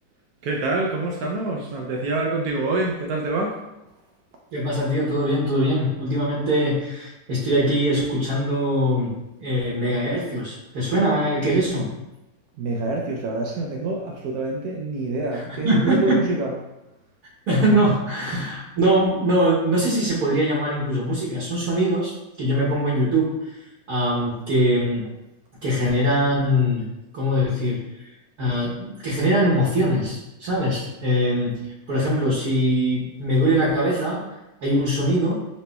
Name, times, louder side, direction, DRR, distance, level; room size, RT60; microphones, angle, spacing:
voice 1, 0.4-3.6 12.6-16.5, right 2 dB, 75° right, 0 dB, 0.9 m, -26 dB
voice 2, 4.5-11.9 15.3-16.2 17.5-23.5 23.9-25.1 25.6-26.8 27.1-27.9 28.4-34.2 34.6-35.3, equal, 60° right, -7 dB, 1.3 m, -22 dB
5.6 x 3.0 x 2.2 m, 0.96 s
omnidirectional pair, 2.1 m